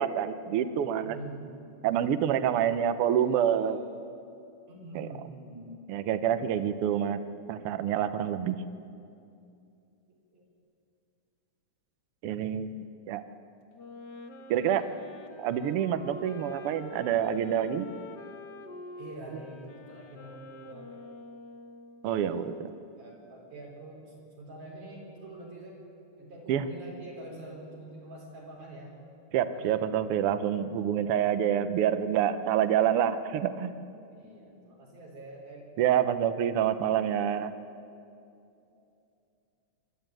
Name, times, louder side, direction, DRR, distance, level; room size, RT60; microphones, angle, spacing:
voice 1, 0.0-1.2 1.8-3.8 4.9-5.1 5.9-7.2 7.5-8.6 12.2-12.8 13.1-13.2 14.5-14.8 15.4-17.9 22.0-22.7 26.5-26.7 29.3-33.7 35.8-37.5, right 9 dB, 70° right, 11 dB, 1.4 m, -27 dB
voice 2, 1.0-1.5 2.1-4.0 4.7-5.8 10.3-10.4 13.8-14.0 14.5-14.9 19.0-21.0 22.0-22.5 23.0-25.8 26.2-28.9 29.5-29.8 34.1-35.7 38.6-38.8, right 1 dB, 90° right, -2 dB, 5.9 m, -46 dB
Wind instrument woodwind instrument, 13.7-22.1, left 3 dB, 55° left, 1.3 m, -46 dB
25.5 x 12.5 x 9.1 m, 2.6 s
omnidirectional pair, 3.4 m